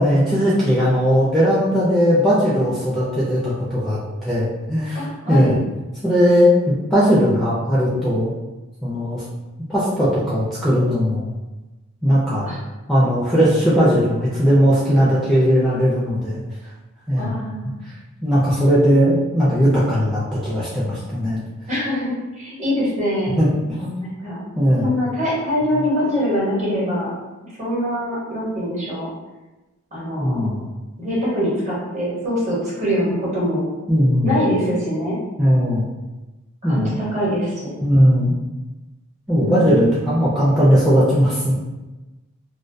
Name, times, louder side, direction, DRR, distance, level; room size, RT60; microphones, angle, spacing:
voice 1, 0.0-5.0 5.3-5.5 6.0-8.3 8.8-9.2 9.7-11.2 12.0-12.5 12.9-16.4 17.1-17.4 18.2-21.4 23.4-23.9 24.6-25.0 30.2-30.6 33.9-34.3 35.4-35.9 36.6-37.0 37.8-38.3 39.3-41.5, equal, ahead, -9 dB, 0.4 m, -18 dB
voice 2, 4.9-5.6 12.4-12.6 17.2-17.8 21.7-23.4 24.0-24.4 24.8-27.1 27.4-29.1 29.9-30.5 31.0-33.6 34.2-35.2 36.6-37.7 39.4-40.1, equal, 35° right, -7 dB, 0.9 m, -23 dB
2.2 x 2.1 x 2.5 m, 1.1 s
head